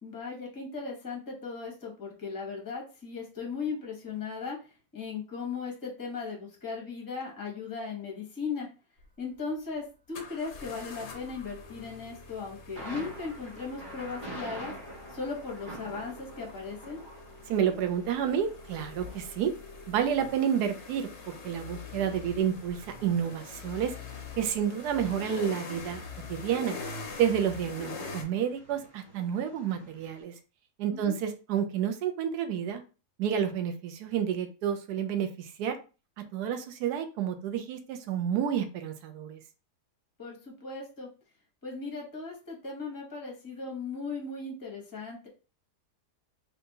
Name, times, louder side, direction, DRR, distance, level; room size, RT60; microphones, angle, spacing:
voice 1, 0.0-4.6 4.9-8.7 9.2-14.7 15.1-17.0 30.9-31.2 40.2-41.1 41.6-45.3, left 4 dB, 15° left, -1 dB, 0.7 m, -37 dB
sound 1, 9.0-9.1 10.1-28.2, left 4 dB, 60° left, 0.7 m, -44 dB
Thunder, 12.7-30.2, right 1 dB, 20° right, 1.1 m, -48 dB
voice 2, 17.5-19.5 19.9-24.0 24.4-26.0 26.3-26.8 27.2-30.3 30.8-32.8 33.2-35.8 36.3-39.4, right 9 dB, 75° right, 7 dB, 1.1 m, -30 dB
3.3 x 2.8 x 2.7 m, 0.34 s
omnidirectional pair, 1.8 m